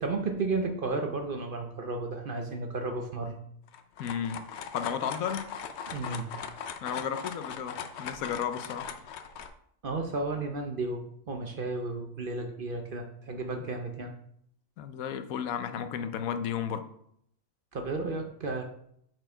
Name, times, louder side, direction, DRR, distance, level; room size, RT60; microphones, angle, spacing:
voice 1, 0.0-3.4 5.9-6.3 9.8-14.1 17.7-18.6, right 3 dB, 50° right, 4 dB, 0.7 m, -33 dB
sound 1, 3.7-9.5, left 7 dB, 65° left, 0.7 m, -40 dB
voice 2, 4.0-4.4 4.7-5.5 6.8-8.9 14.8-16.8, left 8 dB, 85° left, 9 dB, 1.1 m, -33 dB
6.4 x 4.4 x 4.4 m, 0.70 s
omnidirectional pair, 1.4 m